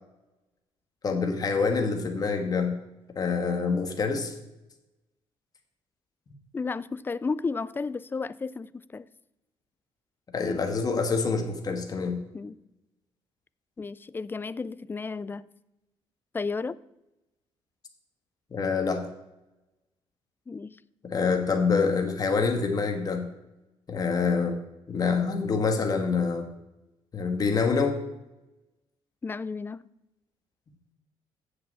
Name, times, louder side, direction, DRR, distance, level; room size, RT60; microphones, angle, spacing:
voice 1, 1.0-2.7 3.1-4.3 10.3-12.2 18.5-19.1 21.0-23.3 23.9-24.6 24.9-26.5 27.1-28.0, left 4 dB, 35° left, 1.6 m, -26 dB
voice 2, 6.5-9.1 12.3-12.6 13.8-15.5 16.3-16.8 20.5-20.8 29.2-29.9, left 4 dB, 20° left, 0.3 m, -33 dB
7.7 x 6.7 x 7.9 m
cardioid pair, 120°, 11 cm